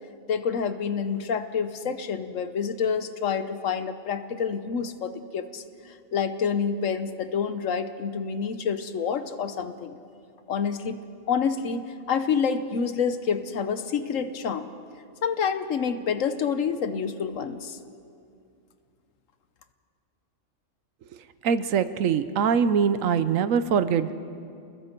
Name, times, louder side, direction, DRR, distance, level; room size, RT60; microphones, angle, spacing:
voice 1, 0.3-5.6 6.1-10.0 10.5-11.0 11.3-14.7 15.2-17.8, left 6 dB, 70° left, 10 dB, 1.3 m, -28 dB
voice 2, 21.4-24.1, right 7 dB, 75° right, 13 dB, 1.1 m, -23 dB
28.5 x 20.5 x 4.5 m, 2.5 s
omnidirectional pair, 1.4 m